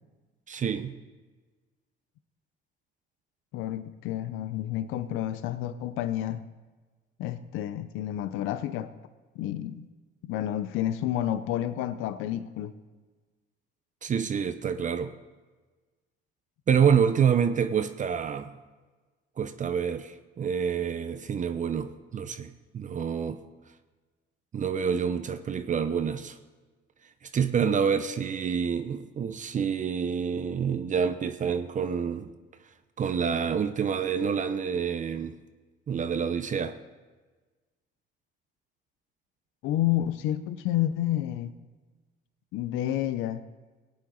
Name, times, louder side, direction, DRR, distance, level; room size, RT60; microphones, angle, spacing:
voice 1, 0.5-1.0 14.0-15.1 16.7-18.6 19.4-23.4 24.5-26.4 27.2-32.3 33.0-35.4 35.9-36.8, right 7 dB, 40° right, 10 dB, 0.7 m, -27 dB
voice 2, 3.5-6.4 7.2-8.9 9.4-9.9 10.2-12.7 39.6-41.5 42.5-43.4, left 12 dB, 80° left, 13 dB, 0.6 m, -30 dB
17.0 x 8.7 x 3.9 m, 1.3 s
cardioid pair, 90°, 20 cm